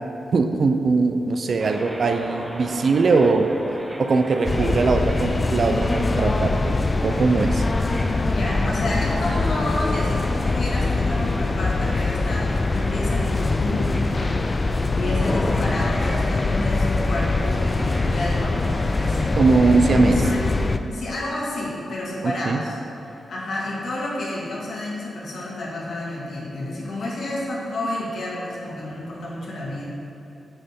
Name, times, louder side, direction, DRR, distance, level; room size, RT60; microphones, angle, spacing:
voice 1, 0.3-3.5 4.0-6.7 7.0-7.6 19.4-20.2 22.2-22.6, right 4 dB, 55° right, 6 dB, 0.5 m, -20 dB
sound 1, 1.6-19.3, right 1 dB, 10° right, 0.8 m, -39 dB
sound 2, 4.4-20.8, left 3 dB, 30° left, 0.4 m, -23 dB
voice 2, 8.2-13.9 14.9-20.6 20.9-22.8 23.1-29.9, left 1 dB, 70° left, -5 dB, 1.9 m, -30 dB
8.9 x 6.6 x 3.7 m, 2.8 s
cardioid pair, 80°, 0 cm